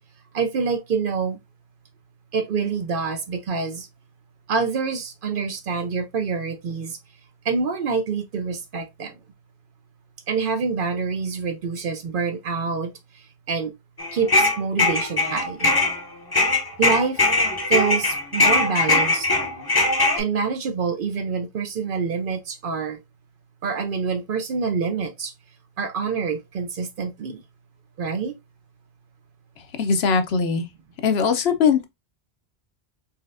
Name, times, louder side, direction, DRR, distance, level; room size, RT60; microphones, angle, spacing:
voice 1, 0.3-1.4 2.3-3.9 4.5-7.0 7.4-9.2 10.3-13.7 14.1-15.7 16.8-17.2 17.7-19.3 20.2-23.0 23.6-25.3 25.8-27.4 28.0-28.3, right 5 dB, 60° right, 0.7 m, -26 dB
sound 1, 14.0-16.0 16.3-20.2, left 2 dB, 25° left, 0.6 m, -20 dB
voice 2, 29.8-30.7 31.0-31.8, left 6 dB, 70° left, 0.9 m, -20 dB
4.0 x 3.2 x 2.5 m
omnidirectional pair, 1.1 m